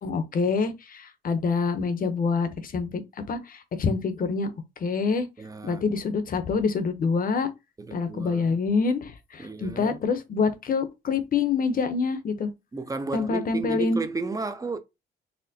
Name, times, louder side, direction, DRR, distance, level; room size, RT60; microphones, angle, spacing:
voice 1, 0.0-3.0 3.3-4.5 4.8-5.3 5.6-7.5 7.9-12.5 13.1-14.0, left 4 dB, 45° left, 0.8 m, -26 dB
voice 2, 5.4-5.8 7.8-8.6 9.4-10.0 12.7-14.8, right 3 dB, 15° right, 0.5 m, -33 dB
4.2 x 2.1 x 2.7 m
cardioid pair, 90°, 20 cm